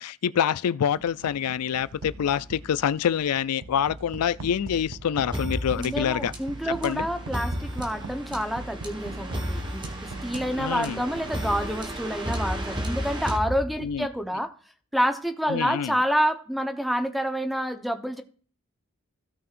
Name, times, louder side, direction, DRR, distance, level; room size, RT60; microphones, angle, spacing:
voice 1, 0.0-6.3 6.6-7.0 10.6-11.0 13.8-14.1 15.5-16.0, left 8 dB, 90° left, 0.4 m, -26 dB
sound 1, 1.0-11.8, right 2 dB, 75° right, 0.8 m, -41 dB
sound 2, 5.3-14.2, equal, 20° right, 1.3 m, -33 dB
voice 2, 5.8-14.5 14.9-18.2, equal, ahead, 0.9 m, -28 dB
16.5 x 6.0 x 2.5 m
head